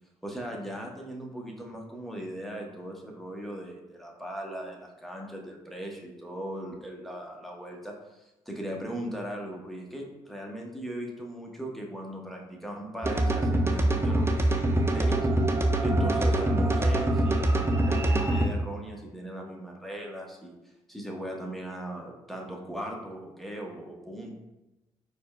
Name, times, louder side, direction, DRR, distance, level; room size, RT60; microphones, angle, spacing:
voice 1, 0.2-15.2 15.8-20.5 20.9-24.3, right 1 dB, ahead, 0 dB, 0.9 m, -38 dB
sound 1, 13.0-18.5, right 1 dB, 20° right, 0.5 m, -24 dB
4.2 x 3.1 x 2.3 m, 1.0 s
hypercardioid pair, 50°, 13 cm